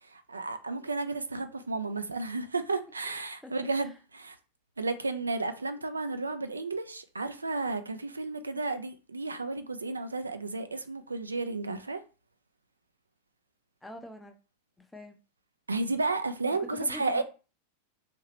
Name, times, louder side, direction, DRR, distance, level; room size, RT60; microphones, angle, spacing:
voice 1, 0.1-4.4 4.8-12.0 15.7-17.2, right 3 dB, 80° right, 0.3 m, -32 dB
voice 2, 3.0-3.9 13.8-14.3 14.8-15.2 16.6-17.2, left 1 dB, 5° left, 0.5 m, -46 dB
2.9 x 2.8 x 2.9 m
figure-of-eight pair, 90°, 0 cm